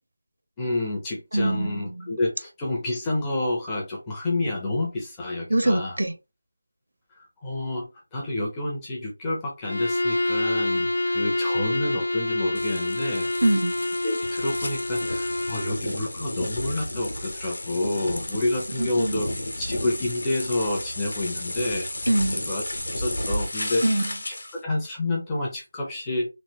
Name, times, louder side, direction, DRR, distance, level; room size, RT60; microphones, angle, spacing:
voice 1, 0.6-6.0 7.2-13.3 14.0-19.3 19.6-21.9 22.5-22.6 22.9-23.8 24.3-24.4 24.6-26.3, left 2 dB, 5° left, 0.5 m, -29 dB
voice 2, 1.3-2.2 5.5-6.1 13.4-13.8 18.3-18.4 18.8-19.2 22.1-22.4 23.8-24.2, right 1 dB, 70° right, 0.7 m, -24 dB
Bowed string instrument, 9.6-15.8, left 2 dB, 65° left, 0.3 m, -27 dB
sound 1, 12.5-24.6, left 1 dB, 50° left, 0.9 m, -33 dB
3.1 x 2.5 x 2.7 m
figure-of-eight pair, 180°, 0 cm